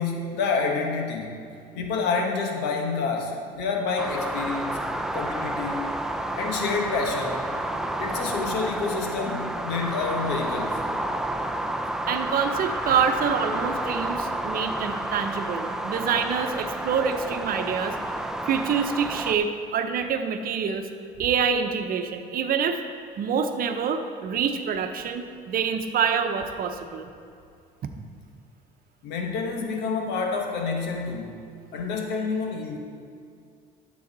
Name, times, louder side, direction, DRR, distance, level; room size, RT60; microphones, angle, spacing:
voice 1, 0.0-1.4 1.8-5.9 6.3-7.5 8.0-10.8 29.0-31.4 31.7-32.8, left 4 dB, 90° left, 2 dB, 1.2 m, -28 dB
sound 1, 4.0-19.4, right 1 dB, 5° right, 0.5 m, -30 dB
voice 2, 12.1-18.0 18.4-20.9 21.2-22.8 23.2-27.1, right 6 dB, 60° right, 6 dB, 0.9 m, -26 dB
12.5 x 7.8 x 4.0 m, 2.3 s
cardioid pair, 110°, 17 cm